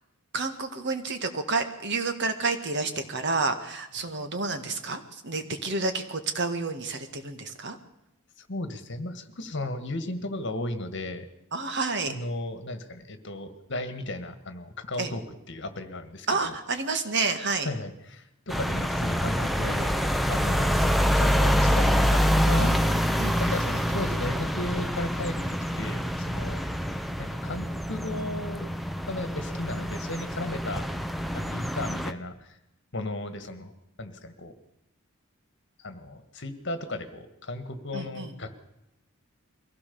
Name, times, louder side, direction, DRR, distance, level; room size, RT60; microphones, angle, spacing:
voice 1, 0.3-7.8 11.5-12.1 15.0-15.1 16.3-17.7 20.8-21.1 22.6-22.8 23.2-23.8 37.9-38.3, right 3 dB, 55° right, 8 dB, 1.9 m, -30 dB
voice 2, 8.4-11.3 12.1-16.6 17.6-19.9 20.3-22.8 23.4-26.7 27.2-28.7 29.1-30.9 31.3-32.6 32.9-33.7 34.0-34.5 35.8-38.5, left 2 dB, 55° left, 10 dB, 1.9 m, -35 dB
sound 1, 18.5-32.1, equal, ahead, 0.8 m, -26 dB
23.0 x 16.5 x 7.0 m, 0.88 s
head